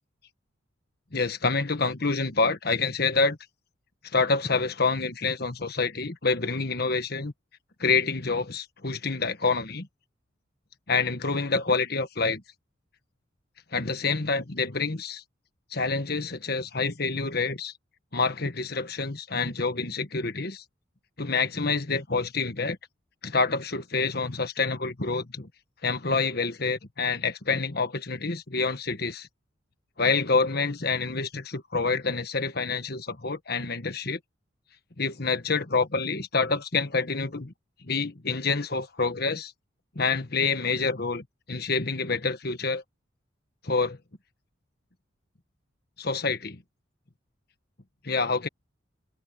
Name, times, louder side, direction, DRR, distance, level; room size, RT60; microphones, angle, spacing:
voice 1, 1.1-3.4 4.1-7.3 7.8-9.9 10.9-12.4 13.7-15.2 15.7-17.7 18.1-20.6 21.2-22.8 23.2-25.5 25.8-29.3 30.0-34.2 35.0-37.5 37.8-39.5 39.9-42.8 43.6-44.0 46.0-46.6 48.0-48.5, left 4 dB, 55° left, 1.5 m, -27 dB
head